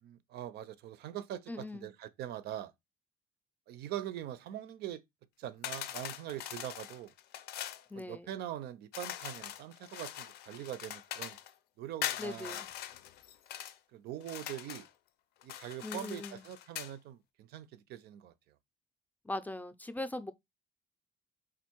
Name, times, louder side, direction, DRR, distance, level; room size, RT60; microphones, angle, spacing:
voice 1, 0.0-2.7 3.7-5.0 5.4-7.1 7.9-11.4 11.8-12.6 13.9-14.9 15.4-18.3, right 12 dB, 70° right, 0.5 m, -43 dB
voice 2, 1.5-1.9 7.9-8.4 12.2-12.7 15.8-16.4 19.3-20.3, left 2 dB, 10° left, 0.4 m, -40 dB
sound 1, 5.6-7.8 8.9-11.5 12.0-13.8 14.2-14.9 15.4-16.9, left 11 dB, 75° left, 0.5 m, -42 dB
3.5 x 2.5 x 4.4 m
cardioid pair, 110°, 17 cm